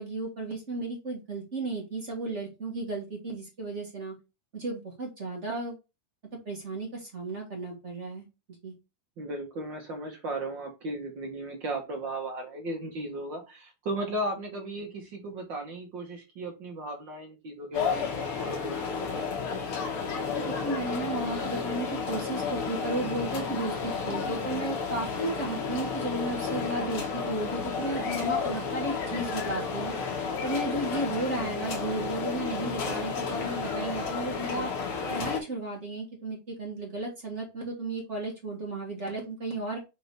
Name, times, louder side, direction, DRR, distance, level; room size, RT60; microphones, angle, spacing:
voice 1, 0.0-4.1 4.5-5.8 6.4-8.2 8.6-8.7 20.3-29.9 30.4-34.7 35.1-39.8, right 2 dB, 35° right, 0 dB, 1.3 m, -34 dB
voice 2, 9.2-19.3, right 1 dB, 50° right, 1 dB, 1.5 m, -36 dB
sound 1, 17.7-35.4, left 5 dB, 55° left, 2.0 m, -32 dB
5.5 x 3.8 x 4.7 m, 0.26 s
omnidirectional pair, 3.6 m